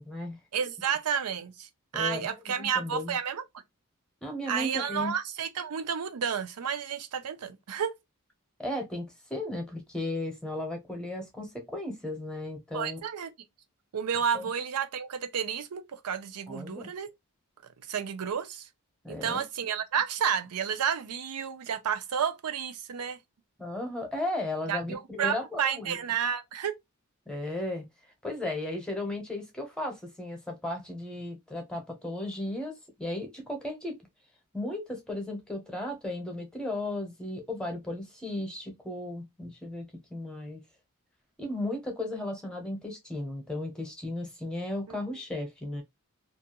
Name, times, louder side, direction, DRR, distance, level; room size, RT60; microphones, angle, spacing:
voice 1, 0.0-0.4 1.9-3.2 4.2-5.1 8.6-13.0 14.3-14.5 16.5-16.9 19.0-19.4 23.6-26.0 27.3-27.8 28.2-34.0 34.5-40.6 41.4-45.8, left 1 dB, 5° left, 0.7 m, -35 dB
voice 2, 0.5-3.4 4.5-7.9 12.7-13.3 13.9-17.1 17.9-18.7 19.1-23.2 24.7-26.8 44.9-45.0, right 7 dB, 90° right, 0.5 m, -31 dB
2.4 x 2.2 x 2.9 m
head